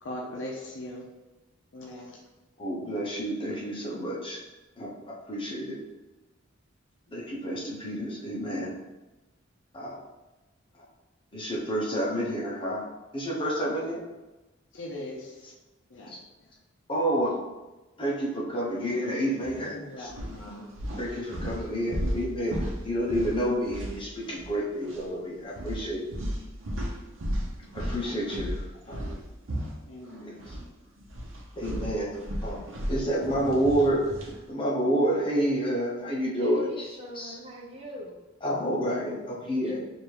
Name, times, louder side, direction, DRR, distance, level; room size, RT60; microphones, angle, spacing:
voice 1, 0.0-1.1 1.7-2.2 14.7-15.5 15.9-16.2 19.5-20.7 28.3-28.4 29.9-30.4, left 1 dB, 65° left, -2 dB, 0.6 m, -40 dB
voice 2, 2.6-4.4 4.8-5.8 7.1-8.8 9.7-10.0 11.3-12.8 13.1-14.0 16.1-16.2 16.9-17.4 18.0-20.1 21.0-26.0 27.7-29.2 30.2-30.5 31.6-32.1 32.4-32.6 32.9-34.0 34.5-36.9 37.1-37.4 38.4-39.8, right 1 dB, 25° left, -4 dB, 0.9 m, -29 dB
sound 1, 19.4-19.6 20.1-24.6 24.8-25.0 25.6-30.7 31.0-34.4, equal, 80° right, 0.8 m, -35 dB
voice 3, 36.4-38.2 39.6-39.8, left 1 dB, 30° right, -1 dB, 0.8 m, -41 dB
3.3 x 2.6 x 4.6 m, 1.1 s
head